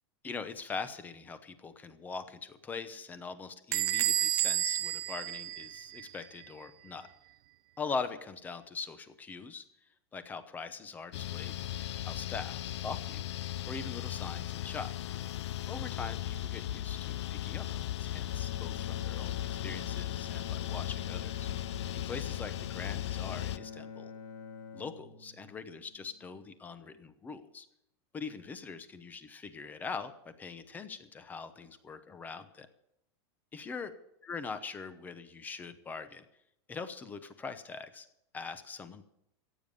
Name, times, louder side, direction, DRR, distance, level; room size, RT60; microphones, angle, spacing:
voice 1, 0.2-7.1 7.8-9.6 10.1-11.6 12.0-13.3 13.6-14.9 15.7-21.5 21.9-24.1 24.7-27.7 28.1-32.7 33.5-33.9 34.2-36.2 36.7-38.1 38.3-39.0, left 4 dB, 10° left, 11 dB, 0.9 m, -42 dB
Bell / Door, 3.7-6.2, right 13 dB, 50° right, 0.6 m, -31 dB
sound 1, 11.1-23.6, left 13 dB, 85° left, 0.5 m, -37 dB
Bowed string instrument, 18.1-26.3, left 5 dB, 55° left, 2.6 m, -47 dB
15.0 x 9.3 x 6.8 m, 0.80 s
supercardioid pair, 165°, 14 cm